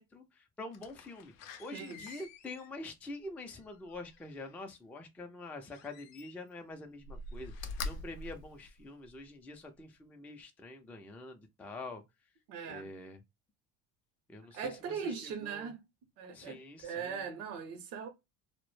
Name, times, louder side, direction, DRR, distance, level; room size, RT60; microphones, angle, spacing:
voice 1, 0.0-12.0 12.7-13.2 14.3-15.7 16.3-17.2, left 2 dB, 5° left, 0.3 m, -46 dB
Slam, 0.7-4.6 5.7-6.6 7.0-9.3 9.8-9.9, left 3 dB, 85° left, 0.5 m, -45 dB
voice 2, 1.7-2.2 12.5-12.9 14.5-15.8 16.2-18.1, right 6 dB, 70° right, 0.7 m, -40 dB
2.0 x 2.0 x 3.0 m
supercardioid pair, 100°, 35 cm